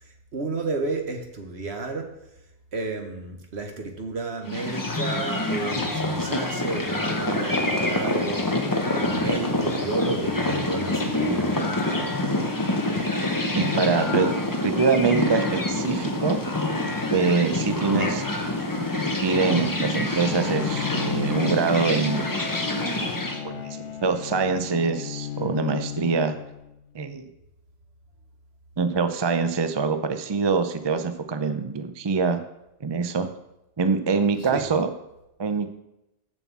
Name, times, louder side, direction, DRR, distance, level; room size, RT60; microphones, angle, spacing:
voice 1, 0.0-2.1 2.7-8.4 8.9-12.3 34.4-34.6, right 3 dB, 65° right, 4 dB, 1.5 m, -32 dB
sound 1, 4.4-23.4, left 2 dB, 20° left, 0.9 m, -26 dB
voice 2, 13.5-14.3 14.6-16.4 17.1-18.2 18.8-18.9 19.2-22.3 23.4-26.4 26.9-27.3 28.8-32.4 32.8-33.3 33.8-34.9 35.4-35.7, right 4 dB, 30° right, 9 dB, 0.5 m, -24 dB
Bowed string instrument, 20.2-26.9, left 9 dB, 85° left, 1.0 m, -35 dB
7.2 x 6.2 x 7.3 m, 0.89 s
omnidirectional pair, 1.2 m